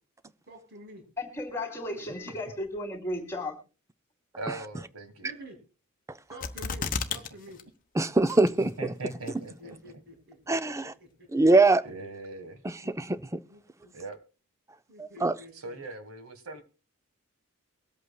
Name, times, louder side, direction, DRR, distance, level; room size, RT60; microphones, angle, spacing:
voice 1, 0.5-1.0 4.5-4.6 5.2-5.6 6.3-7.6 9.4-11.3 12.8-12.9 13.5-13.9 14.9-15.8, equal, 50° right, 5.9 m, -49 dB
voice 2, 1.2-3.6, left 1 dB, 10° left, 2.8 m, -34 dB
voice 3, 4.4-5.3 7.1-7.2 8.6-9.8 11.8-12.6 13.9-14.2 15.5-16.6, right 2 dB, 80° right, 1.7 m, -40 dB
sound 1, 6.4-7.3 7.6-7.7 8.3-8.7 9.3-9.4, left 5 dB, 40° left, 0.9 m, -32 dB
voice 4, 8.0-8.7 10.5-10.9 11.3-11.8 12.6-13.4 15.0-15.3, right 2 dB, 15° right, 0.4 m, -23 dB
23.5 x 8.3 x 2.3 m
head